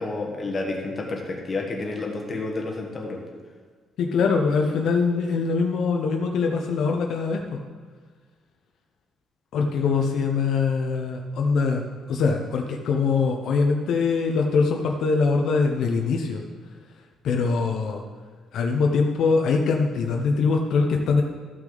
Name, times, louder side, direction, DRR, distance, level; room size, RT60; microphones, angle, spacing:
voice 1, 0.0-3.2, left 2 dB, 25° left, 0 dB, 1.2 m, -30 dB
voice 2, 4.0-7.6 9.5-11.8 12.1-16.4 17.2-18.0 18.5-21.2, left 4 dB, 60° left, 2 dB, 0.7 m, -23 dB
13.5 x 6.0 x 3.9 m, 1.5 s
cardioid pair, 175°, 0 cm